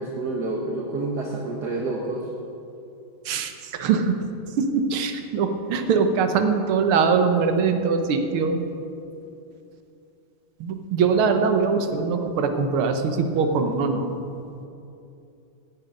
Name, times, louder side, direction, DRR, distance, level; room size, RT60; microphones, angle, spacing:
voice 1, 0.0-2.3, right 2 dB, 55° right, 0 dB, 1.6 m, -28 dB
voice 2, 3.3-4.2 4.6-8.6 10.6-14.2, right 5 dB, 80° right, 7 dB, 1.9 m, -22 dB
16.0 x 10.5 x 5.3 m, 2.7 s
omnidirectional pair, 2.3 m